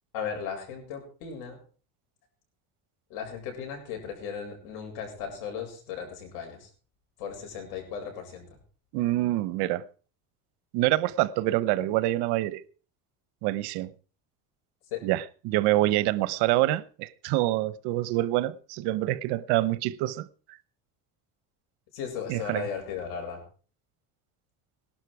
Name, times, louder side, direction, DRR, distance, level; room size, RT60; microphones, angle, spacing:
voice 1, 0.1-1.6 3.1-6.7 7.2-8.6 14.9-15.0 21.9-23.4, left 7 dB, 80° left, 7.7 m, -36 dB
voice 2, 8.9-9.8 10.7-12.6 13.4-13.9 15.0-20.6 22.3-22.6, right 16 dB, 80° right, 1.0 m, -26 dB
18.5 x 12.0 x 4.8 m
cardioid pair, 150°, 40 cm